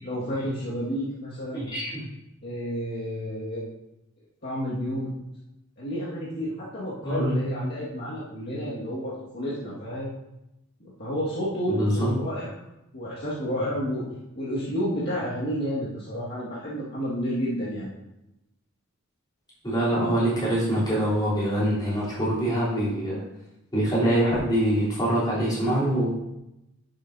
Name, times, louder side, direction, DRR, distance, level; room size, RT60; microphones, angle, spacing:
voice 1, 0.0-1.7 2.4-3.7 4.4-5.1 5.8-10.1 10.8-12.5 12.9-14.0 14.4-17.9, equal, 45° left, -8 dB, 1.8 m, -30 dB
voice 2, 1.5-2.1 7.0-7.4 11.7-12.1 19.6-23.2 23.7-26.1, right 1 dB, 20° left, -8 dB, 3.4 m, -24 dB
10.5 x 7.6 x 2.7 m, 0.89 s
head